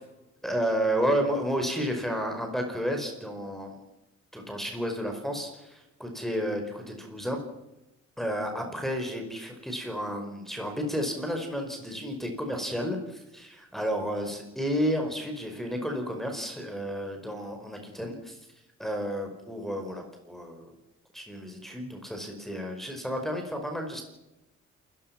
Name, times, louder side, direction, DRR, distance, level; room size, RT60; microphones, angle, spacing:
voice 1, 0.4-3.8 4.3-7.4 8.2-18.4 18.8-20.7 21.1-24.0, equal, ahead, 2 dB, 4.9 m, -31 dB
28.5 x 15.5 x 6.0 m, 0.93 s
cardioid pair, 90°, 30 cm